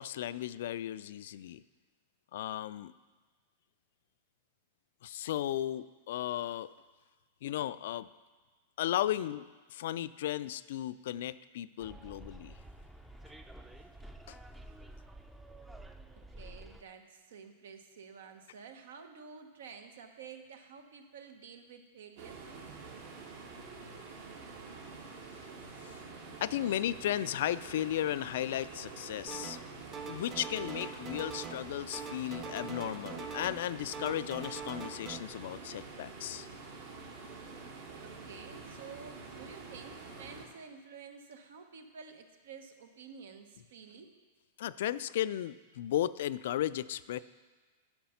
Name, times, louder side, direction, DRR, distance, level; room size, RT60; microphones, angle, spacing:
voice 1, 0.0-1.6 2.3-2.9 5.0-6.7 7.4-8.1 8.8-9.4 9.7-12.5 14.3-14.4 26.4-29.6 30.1-36.5 44.6-47.2, left 12 dB, 70° left, 16 dB, 0.3 m, -35 dB
Bus, 11.8-16.8, right 1 dB, 5° right, 0.5 m, -50 dB
voice 2, 16.4-22.4 38.0-44.1, right 6 dB, 80° right, 6 dB, 1.0 m, -50 dB
sound 1, 22.2-40.5, right 4 dB, 65° right, 1.7 m, -47 dB
sound 2, 29.3-29.7 29.9-31.7 31.9-33.7 33.9-35.2, right 5 dB, 30° right, 0.8 m, -43 dB
10.5 x 5.7 x 5.7 m, 1.4 s
hypercardioid pair, 135°, 0 cm